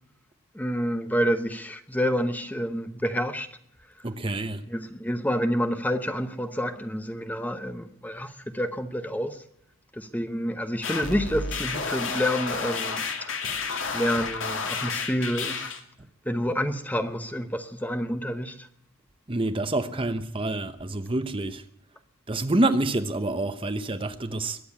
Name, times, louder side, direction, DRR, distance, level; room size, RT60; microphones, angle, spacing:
voice 1, 0.5-3.5 4.7-9.4 9.9-13.6 13.9-15.6 16.2-18.7, equal, 10° left, 0.9 m, -28 dB
voice 2, 4.0-4.6 19.3-21.6 22.3-24.6, right 2 dB, 25° right, 0.8 m, -27 dB
sound 1, 10.8-15.8, left 4 dB, 65° left, 2.2 m, -31 dB
22.0 x 7.8 x 8.5 m
head